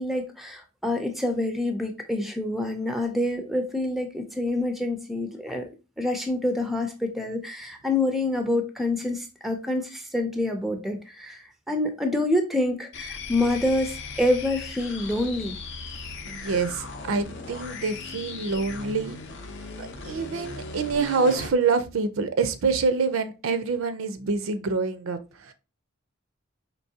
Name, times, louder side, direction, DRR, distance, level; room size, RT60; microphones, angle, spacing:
voice 1, 0.0-15.6, left 1 dB, ahead, 0.4 m, -27 dB
sound 1, 12.9-21.6, left 4 dB, 55° left, 0.6 m, -38 dB
voice 2, 16.3-19.2 19.8-25.5, right 4 dB, 65° right, 0.5 m, -26 dB
4.5 x 3.0 x 2.7 m
head